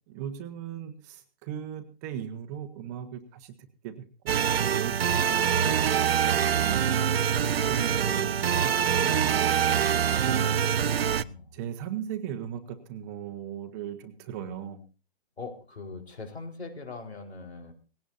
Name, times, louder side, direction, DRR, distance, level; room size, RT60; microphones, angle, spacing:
voice 1, 0.1-3.5 3.8-5.8 6.5-7.1 7.4-10.5 11.5-14.8, right 9 dB, 15° right, 7 dB, 1.0 m, -38 dB
sound 1, 4.3-11.2, right 8 dB, 70° right, 0.8 m, -24 dB
voice 2, 10.9-11.6 15.4-17.7, left 3 dB, 90° left, 4 dB, 4.6 m, -42 dB
18.5 x 17.0 x 2.7 m, 0.32 s
hypercardioid pair, 160°, 31 cm